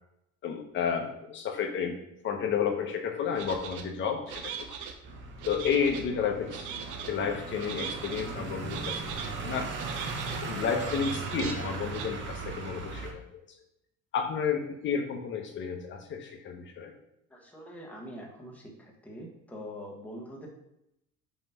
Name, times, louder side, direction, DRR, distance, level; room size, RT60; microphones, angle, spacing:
voice 1, 0.4-2.0 2.2-4.7 5.5-6.8 7.1-9.7 10.4-13.4 14.1-16.9, left 6 dB, 40° left, 5 dB, 0.8 m, -31 dB
sound 1, 3.4-3.8 4.3-4.9 5.4-6.0 6.5-7.1 7.6-8.2 8.7-9.3 9.8-10.4 10.8-11.5 11.9-12.1, right 7 dB, 80° right, 0.9 m, -39 dB
sound 2, 5.0-13.1, right 4 dB, 40° right, 1.0 m, -38 dB
voice 2, 17.3-20.5, equal, 5° left, -2 dB, 1.3 m, -44 dB
5.7 x 3.0 x 5.5 m, 0.82 s
cardioid pair, 150°, 30 cm